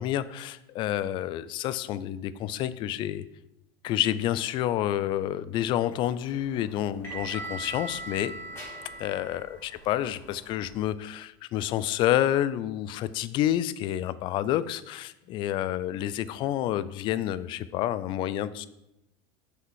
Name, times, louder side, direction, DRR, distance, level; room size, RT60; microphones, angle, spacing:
voice 1, 0.0-3.2 3.8-8.4 9.0-18.7, left 12 dB, 40° left, 15 dB, 0.3 m, -29 dB
sound 1, 5.9-10.8, right 2 dB, 20° left, 2.8 m, -41 dB
6.4 x 4.9 x 4.7 m, 0.87 s
supercardioid pair, 140°, 12 cm